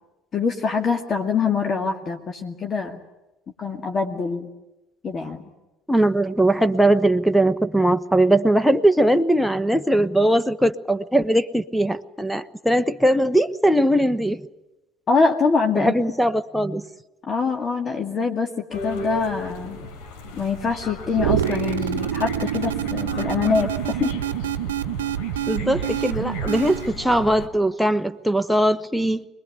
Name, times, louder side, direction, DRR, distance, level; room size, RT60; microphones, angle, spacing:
voice 1, 0.3-3.0 3.6-4.5 5.0-5.4 15.1-15.9 17.3-19.8 20.4-24.1, left 5 dB, 35° left, 2.4 m, -24 dB
voice 2, 5.9-14.4 15.7-16.8 25.5-29.3, right 1 dB, ahead, 1.1 m, -20 dB
sound 1, 18.7-27.5, left 2 dB, 65° left, 4.6 m, -36 dB
sound 2, 21.1-26.9, right 10 dB, 75° right, 0.9 m, -26 dB
25.5 x 21.0 x 9.6 m
figure-of-eight pair, 60°, 0 cm